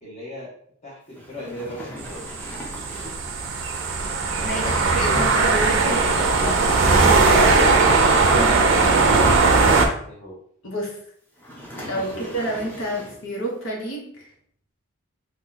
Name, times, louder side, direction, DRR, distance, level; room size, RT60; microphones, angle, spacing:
voice 1, 0.0-0.5 0.8-2.2 4.3-6.6 10.0-10.4 11.9-12.3, left 1 dB, 35° left, -7 dB, 1.0 m, -36 dB
sound 1, 1.1-3.4 5.9-8.6 11.4-13.3, equal, 10° left, 0.6 m, -39 dB
sound 2, 2.0-9.9, right 3 dB, 65° right, 0.5 m, -18 dB
voice 2, 4.4-6.0 6.9-9.3 10.6-11.0 11.7-14.3, right 1 dB, 70° left, -2 dB, 1.1 m, -29 dB
2.9 x 2.3 x 3.8 m, 0.64 s
head